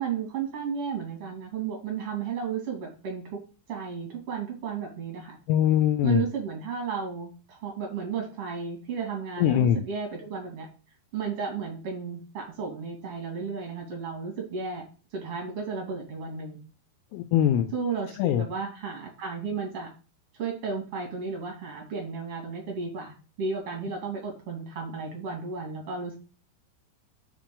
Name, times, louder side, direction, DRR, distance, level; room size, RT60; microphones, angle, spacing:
voice 1, 0.0-3.4 3.7-5.4 6.0-10.7 11.1-14.8 15.1-16.6 17.7-19.9 20.3-26.1, right 5 dB, 45° right, 2.4 m, -33 dB
voice 2, 5.5-6.3 9.4-9.8 17.1-17.7 18.2-18.5, left 10 dB, 85° left, 2.3 m, -22 dB
7.2 x 5.1 x 3.7 m
omnidirectional pair, 4.7 m